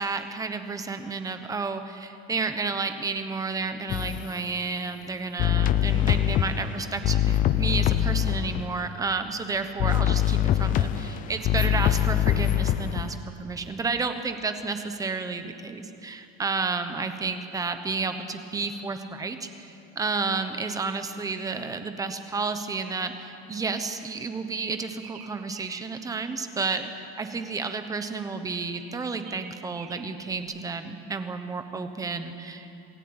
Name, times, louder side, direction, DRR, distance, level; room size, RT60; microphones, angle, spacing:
voice 1, 0.0-32.7, right 4 dB, 10° right, 8 dB, 1.0 m, -31 dB
sound 1, 3.9-4.3 5.4-8.7 9.8-13.1, left 11 dB, 25° left, 0.6 m, -23 dB
sound 2, 24.0-25.9 28.7-30.4, right 10 dB, 65° right, 2.1 m, -47 dB
27.5 x 17.0 x 8.8 m, 2.8 s
cardioid pair, 170°, 31 cm